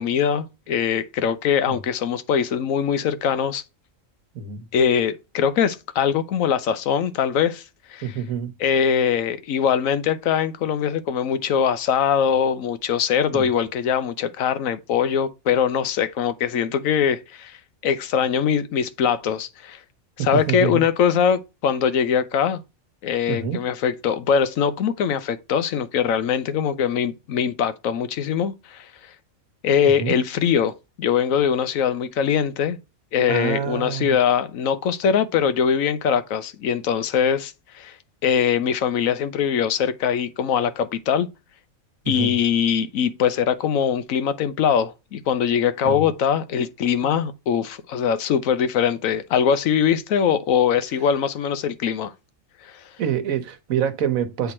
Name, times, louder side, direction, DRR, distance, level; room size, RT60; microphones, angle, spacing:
voice 1, 0.0-3.6 4.7-7.6 7.9-8.2 8.6-17.6 17.8-19.8 20.2-22.6 23.0-28.9 29.6-30.7 31.0-32.8 33.1-38.0 38.2-41.3 42.1-52.1 52.6-52.8, left 7 dB, 85° left, 1.1 m, -22 dB
voice 2, 4.3-4.7 8.0-8.5 20.2-20.9 23.3-23.6 30.0-30.2 33.3-34.2 42.0-42.3 45.8-46.0 53.0-54.5, right 8 dB, 90° right, 1.4 m, -26 dB
7.9 x 3.5 x 4.2 m
omnidirectional pair, 1.4 m